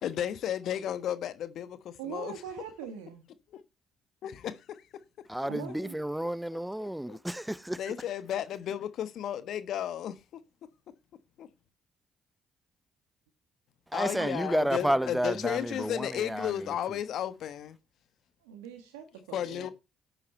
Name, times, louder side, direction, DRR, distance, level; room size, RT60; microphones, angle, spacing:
voice 1, 0.0-2.3 3.5-3.6 4.2-4.8 6.5-7.2 7.8-10.4 11.4-11.5 13.9-17.8 19.3-19.7, left 10 dB, 65° left, 1.2 m, -34 dB
voice 2, 2.0-3.2 5.5-6.0 14.2-14.3 18.4-19.7, right 7 dB, 85° right, 1.4 m, -42 dB
voice 3, 5.3-7.8 13.9-16.7, right 1 dB, 5° right, 0.7 m, -31 dB
12.5 x 8.8 x 4.3 m
hypercardioid pair, 45°, 0 cm